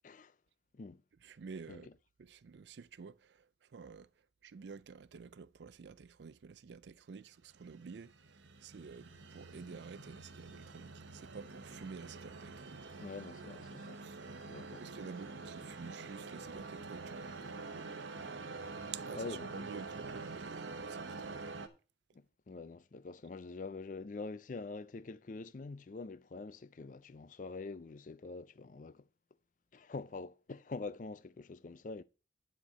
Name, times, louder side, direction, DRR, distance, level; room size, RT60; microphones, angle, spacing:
voice 1, 0.0-0.4 0.7-1.0 1.7-1.8 13.0-14.0 14.5-14.8 19.1-19.7 22.1-29.1 29.7-32.0, left 3 dB, 40° left, 0.4 m, -45 dB
voice 2, 1.2-1.9 2.2-4.1 4.4-12.9 14.0-14.2 14.8-17.5 18.9-21.6, right 5 dB, 65° right, 0.4 m, -50 dB
sound 1, 7.6-21.7, right 3 dB, 80° right, 1.0 m, -46 dB
9.9 x 4.4 x 6.4 m
head